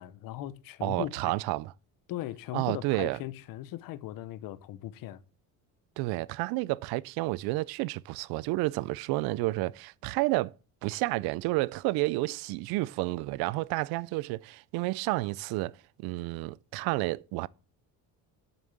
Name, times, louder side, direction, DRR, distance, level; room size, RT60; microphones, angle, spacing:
voice 1, 0.0-1.1 2.1-5.2, left 14 dB, 70° left, 0.9 m, -38 dB
voice 2, 0.8-1.7 2.5-3.2 6.0-10.5 10.8-17.5, right 20 dB, 90° right, 0.5 m, -30 dB
7.1 x 6.4 x 7.1 m
cardioid pair, 135°, 36 cm